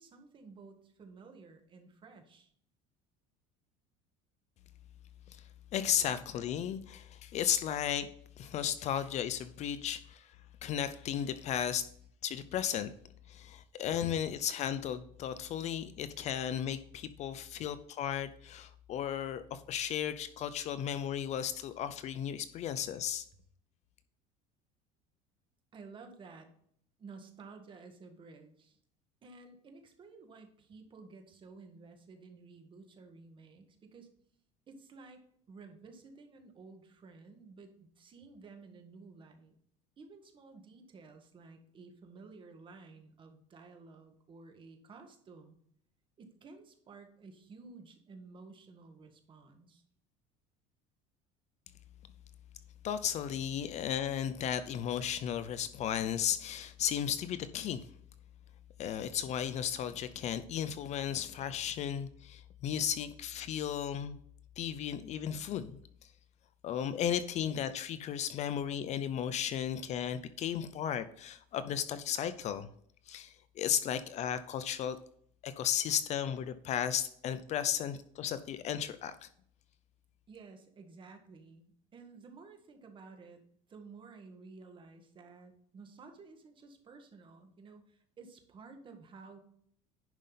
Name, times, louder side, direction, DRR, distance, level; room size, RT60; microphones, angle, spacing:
voice 1, 0.0-2.5 25.7-26.5 27.0-28.8 29.2-34.1 34.7-35.2 35.5-39.6 40.0-45.6 46.2-49.8 80.3-83.4 83.7-89.4, right 4 dB, 30° right, 5 dB, 1.6 m, -53 dB
voice 2, 5.7-8.1 8.4-10.4 10.6-11.9 12.2-12.9 13.3-23.3 52.8-57.9 58.8-64.2 64.6-65.8 66.6-72.7 73.1-75.0 75.4-79.3, left 9 dB, 40° left, 13 dB, 0.6 m, -35 dB
10.5 x 5.3 x 4.0 m, 0.65 s
cardioid pair, 135°, 17 cm